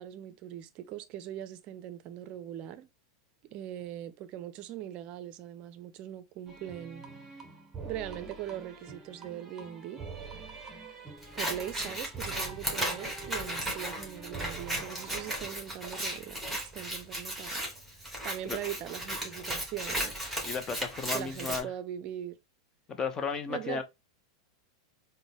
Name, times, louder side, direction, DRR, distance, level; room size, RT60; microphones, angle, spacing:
voice 1, 0.0-2.9 3.5-7.1 7.8-10.0 11.3-17.6 18.2-20.1 21.0-22.4 23.5-23.8, right 11 dB, 45° right, 0.4 m, -41 dB
sound 1, 6.5-15.5, right 4 dB, 20° right, 0.8 m, -46 dB
Scissors, 11.2-21.6, right 1 dB, ahead, 1.4 m, -36 dB
voice 2, 20.4-21.7 22.9-23.8, left 5 dB, 25° left, 0.6 m, -34 dB
3.8 x 2.1 x 3.4 m
hypercardioid pair, 100°, 2 cm